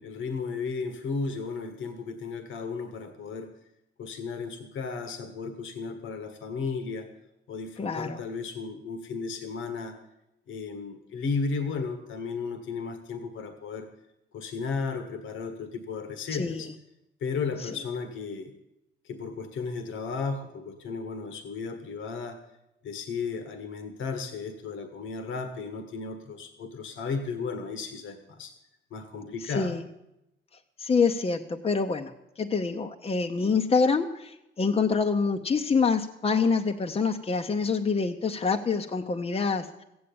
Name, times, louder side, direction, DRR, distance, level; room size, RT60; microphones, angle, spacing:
voice 1, 0.0-3.5 4.0-7.1 7.5-10.0 10.5-13.9 14.3-16.7 17.2-18.5 19.0-22.4 22.8-28.5 28.9-29.8, left 4 dB, 75° left, 8 dB, 1.5 m, -34 dB
voice 2, 7.8-8.2 16.3-16.6 17.6-17.7 29.4-29.8 30.8-39.8, left 5 dB, 30° left, 4 dB, 0.8 m, -26 dB
14.0 x 8.7 x 8.6 m, 0.89 s
cardioid pair, 90°, 20 cm